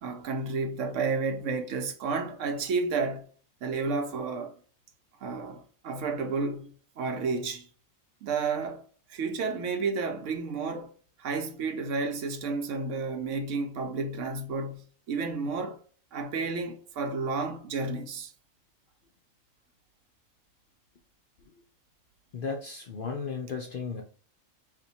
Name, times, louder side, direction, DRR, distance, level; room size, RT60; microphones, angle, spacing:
voice 1, 0.0-3.3 3.6-4.5 5.2-7.7 8.2-8.8 9.1-10.9 11.2-15.8 16.1-18.3, right 4 dB, 75° right, 1.0 m, -31 dB
voice 2, 22.3-24.0, left 5 dB, 65° left, 0.5 m, -34 dB
2.9 x 2.5 x 4.0 m
omnidirectional pair, 1.4 m